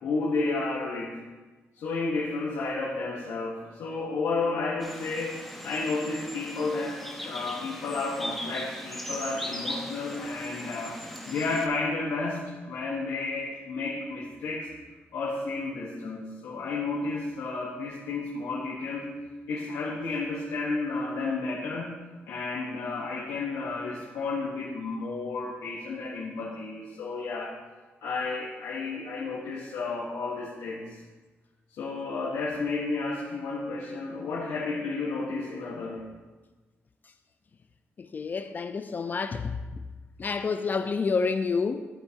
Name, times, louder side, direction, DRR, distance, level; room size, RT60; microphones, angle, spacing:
voice 1, 0.0-1.2 1.7-7.0 7.2-14.7 15.1-19.1 19.5-22.0 22.3-27.5 28.0-31.0 31.7-36.0, left 3 dB, 90° left, 1.2 m, -32 dB
sound 1, 4.8-11.7, equal, ahead, 1.0 m, -39 dB
voice 2, 38.0-39.6 40.2-41.9, left 5 dB, 40° left, 0.4 m, -28 dB
13.5 x 4.6 x 2.8 m
cardioid pair, 85°, 5 cm